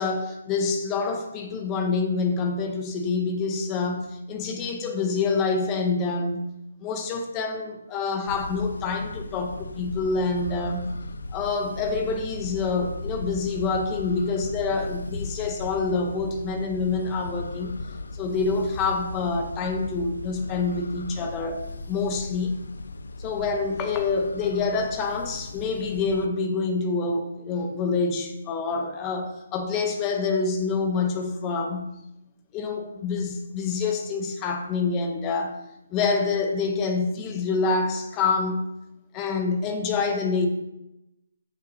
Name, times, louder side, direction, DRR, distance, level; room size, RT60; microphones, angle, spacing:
voice 1, 0.0-6.5 6.8-10.9 11.3-17.8 18.1-22.6 23.2-31.9 32.5-35.6 35.9-38.6 39.1-40.5, left 4 dB, 15° left, 0.6 m, -27 dB
sound 1, 8.3-26.3, left 3 dB, 90° left, 0.5 m, -37 dB
13.5 x 5.5 x 2.6 m
hypercardioid pair, 175°, 0 cm